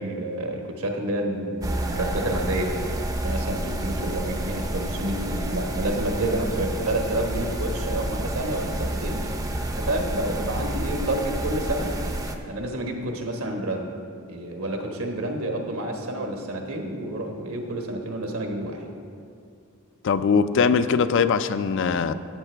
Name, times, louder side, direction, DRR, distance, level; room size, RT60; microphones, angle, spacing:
voice 1, 0.0-2.8 3.2-9.2 9.8-11.9 12.5-13.9 14.3-18.9, right 1 dB, 80° right, 2 dB, 1.3 m, -29 dB
sound 1, 1.6-12.4, right 1 dB, 15° right, 0.5 m, -29 dB
voice 2, 20.0-22.1, left 5 dB, 60° left, 12 dB, 0.4 m, -21 dB
13.0 x 8.2 x 3.4 m, 2.4 s
head